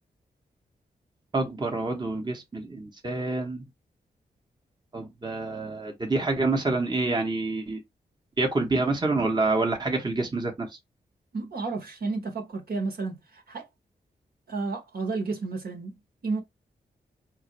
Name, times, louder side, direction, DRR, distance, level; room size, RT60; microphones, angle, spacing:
voice 1, 1.3-3.6 4.9-7.8 8.4-10.8, right 3 dB, 25° right, 0.9 m, -27 dB
voice 2, 11.3-13.6 14.5-16.0 16.2-16.4, right 3 dB, 65° right, 1.2 m, -31 dB
3.9 x 2.5 x 3.0 m
cardioid pair, 70°, 17 cm